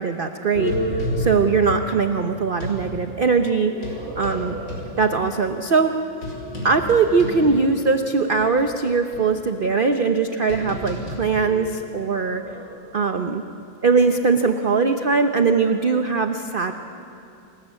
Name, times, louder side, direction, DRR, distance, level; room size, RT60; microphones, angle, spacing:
voice 1, 0.0-3.7 4.2-4.6 5.0-5.9 6.6-12.4 12.9-13.4 13.8-16.7, right 4 dB, 45° right, 7 dB, 0.7 m, -21 dB
sound 1, 0.5-2.8 3.6-8.0 8.4-8.5 9.1-12.7, left 1 dB, 80° left, 5.0 m, -31 dB
28.5 x 20.0 x 8.4 m, 2.6 s
omnidirectional pair, 2.1 m